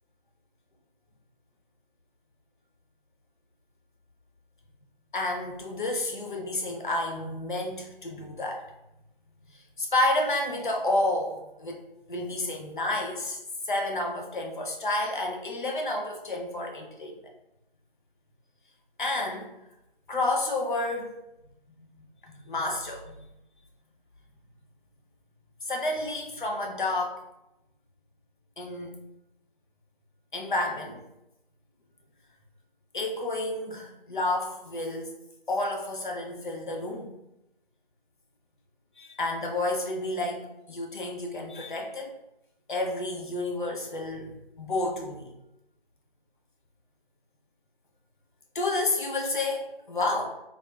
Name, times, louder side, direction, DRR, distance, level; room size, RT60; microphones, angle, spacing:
voice 1, 5.1-8.6 9.5-11.8 12.1-13.4 13.6-17.2 19.0-19.5 20.1-21.2 21.8-23.3 25.6-27.2 28.6-28.9 30.3-31.0 32.9-35.1 35.5-37.1 39.0-42.1 42.7-45.3 48.5-50.3, left 2 dB, 55° left, 1 dB, 0.6 m, -30 dB
3.6 x 2.3 x 2.2 m, 0.90 s
figure-of-eight pair, 165°, 30 cm